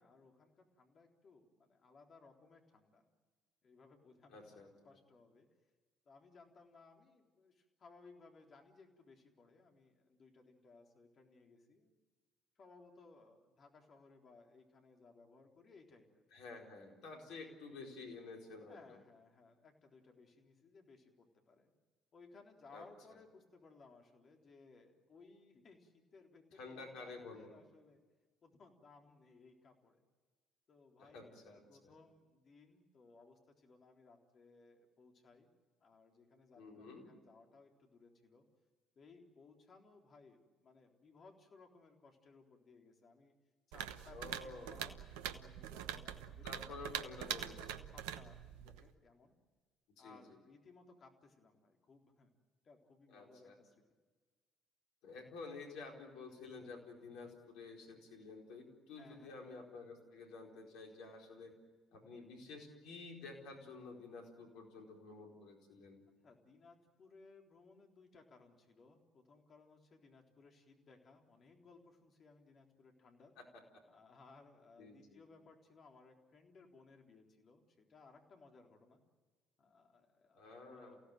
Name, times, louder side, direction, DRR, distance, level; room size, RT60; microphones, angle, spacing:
voice 1, 0.0-3.0 3.6-4.6 4.8-5.5 6.1-11.9 12.6-16.2 17.4-17.6 18.7-21.7 22.1-28.0 28.4-30.0 30.7-35.5 35.8-38.5 39.0-43.3 43.7-49.3 50.0-52.3 52.6-53.8 59.0-59.4 66.2-73.3 73.9-79.0 79.6-81.0, left 4 dB, 45° left, 2 dB, 3.7 m, -62 dB
voice 2, 4.3-4.7 16.3-19.0 22.7-22.8 26.5-27.5 31.0-31.9 36.6-37.1 44.1-44.8 46.4-47.5 49.9-50.2 53.1-53.6 55.0-61.5 61.9-66.0 73.4-73.5 74.8-75.2 80.3-81.0, left 3 dB, 70° left, 1 dB, 4.6 m, -51 dB
sound 1, 43.7-48.9, right 10 dB, 75° right, 1.0 m, -44 dB
29.0 x 16.5 x 9.2 m, 1.4 s
hypercardioid pair, 50°, 0 cm